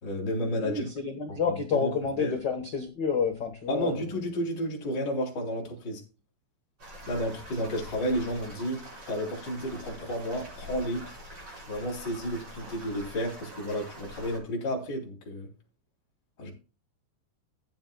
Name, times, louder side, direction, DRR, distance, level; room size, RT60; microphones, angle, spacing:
voice 1, 0.0-0.9 1.3-1.6 1.8-1.9 2.2-2.3 3.7-6.0 7.1-11.1 11.6-15.5 16.4-16.5, equal, 35° left, 3.3 m, -32 dB
voice 2, 0.6-4.1, left 5 dB, 60° left, 1.1 m, -29 dB
sound 1, 6.8-14.4, equal, 40° right, 5.5 m, -45 dB
14.5 x 9.3 x 2.2 m
omnidirectional pair, 3.8 m